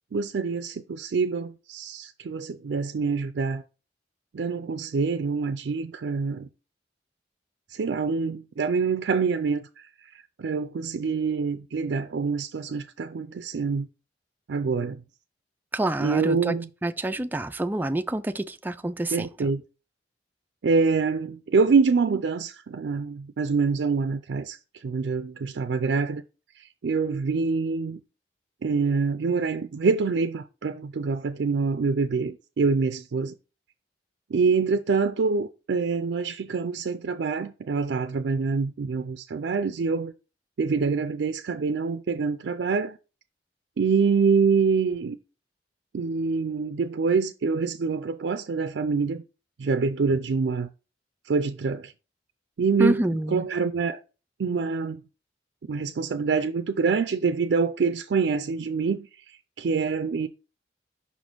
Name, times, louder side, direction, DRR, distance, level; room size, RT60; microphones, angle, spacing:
voice 1, 0.1-3.6 4.3-6.5 7.7-9.7 10.4-13.9 14.5-15.0 16.0-16.7 19.1-19.6 20.6-24.6 24.8-26.2 26.8-28.0 28.6-33.3 34.3-40.1 40.6-43.0 43.8-45.2 45.9-49.2 49.6-50.7 51.3-51.9 52.6-53.0 53.3-54.0 54.4-55.0 55.7-59.1 59.6-60.3, right 5 dB, 80° right, 0.4 m, -25 dB
voice 2, 15.7-16.6 16.8-19.5 52.8-53.4, right 1 dB, 10° right, 0.3 m, -27 dB
5.6 x 4.2 x 4.5 m
head